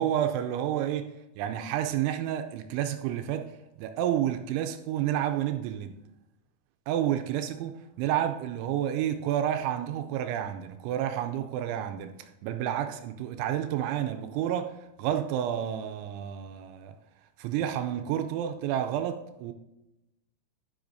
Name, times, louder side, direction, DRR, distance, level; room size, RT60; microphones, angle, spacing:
voice 1, 0.0-6.0 6.9-17.0 17.4-19.5, right 10 dB, 85° right, 2.9 m, -30 dB
12.0 x 10.5 x 2.6 m
omnidirectional pair, 5.4 m